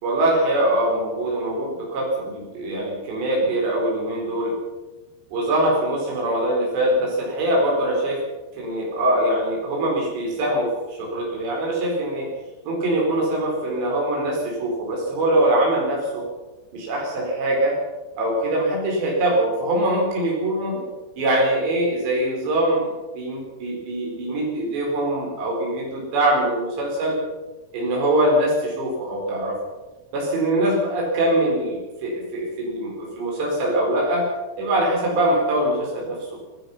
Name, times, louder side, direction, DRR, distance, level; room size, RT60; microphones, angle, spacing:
voice 1, 0.0-4.5 5.3-8.2 8.6-12.3 12.6-16.3 16.7-17.8 18.2-20.9 21.2-27.2 27.7-29.6 30.1-34.3 34.6-36.3, right 1 dB, 85° right, -2 dB, 6.7 m, -23 dB
25.0 x 17.5 x 5.8 m, 1.2 s
omnidirectional pair, 4.8 m